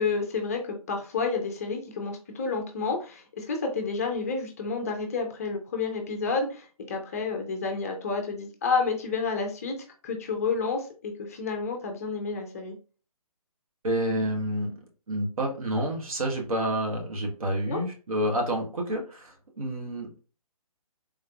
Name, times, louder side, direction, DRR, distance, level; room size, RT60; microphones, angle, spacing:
voice 1, 0.0-9.8 10.0-12.7 17.7-17.8, left 4 dB, 25° left, 3 dB, 0.5 m, -30 dB
voice 2, 13.8-14.8 15.1-20.2, right 1 dB, 65° right, 1 dB, 1.3 m, -29 dB
3.6 x 3.2 x 2.4 m, 0.35 s
figure-of-eight pair, 145°, 20 cm